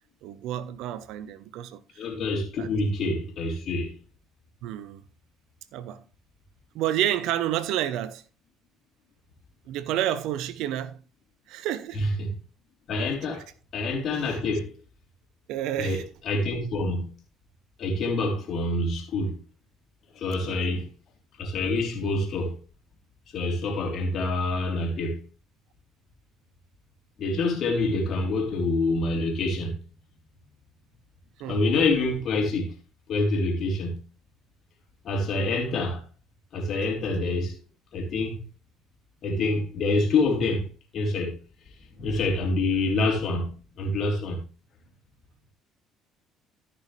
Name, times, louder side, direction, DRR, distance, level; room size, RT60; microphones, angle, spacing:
voice 1, 0.2-1.8 2.6-2.7 4.6-5.0 5.7-6.0 6.7-8.2 9.7-11.0 11.5-12.0 14.3-14.4 15.5-16.0 20.4-20.8 31.4-31.6, right 12 dB, 65° right, 0.7 m, -30 dB
voice 2, 2.0-3.9 11.9-12.3 12.9-13.4 13.7-14.8 15.8-17.1 17.8-19.4 20.1-20.9 21.4-22.6 23.3-25.2 27.2-29.7 31.5-32.7 33.1-34.0 35.0-36.0 36.5-37.5 37.9-38.4 39.2-40.7 40.9-41.3 42.0-44.4, left 2 dB, 55° left, 3.2 m, -26 dB
14.5 x 6.0 x 3.2 m
hypercardioid pair, 55°, 0 cm